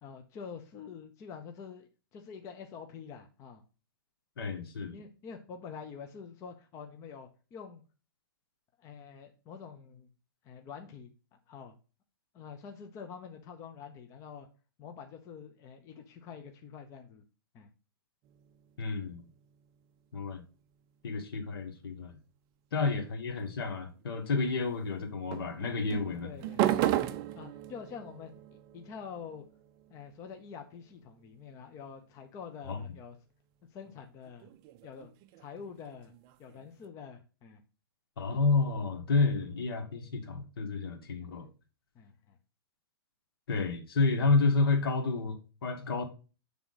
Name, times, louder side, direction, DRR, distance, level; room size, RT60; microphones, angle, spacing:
voice 1, 0.0-3.6 4.9-7.8 8.8-10.1 10.4-11.1 11.5-11.7 12.3-14.5 14.8-17.2 17.5-17.7 25.6-28.3 28.7-29.4 29.9-33.2 33.7-34.5 34.8-35.1 35.4-36.1 36.4-37.6 41.2-41.3 41.9-42.4, left 6 dB, 25° left, 0.6 m, -46 dB
voice 2, 4.4-5.0 18.8-19.3 20.1-20.4 21.0-22.2 22.7-26.3 32.6-32.8 38.2-41.5 43.5-46.0, left 4 dB, 75° left, 1.5 m, -30 dB
sound 1, 18.2-20.1 23.7-24.2 25.3-32.1 33.8-36.9, right 13 dB, 30° right, 0.4 m, -37 dB
7.5 x 3.5 x 3.9 m
hypercardioid pair, 145°, 12 cm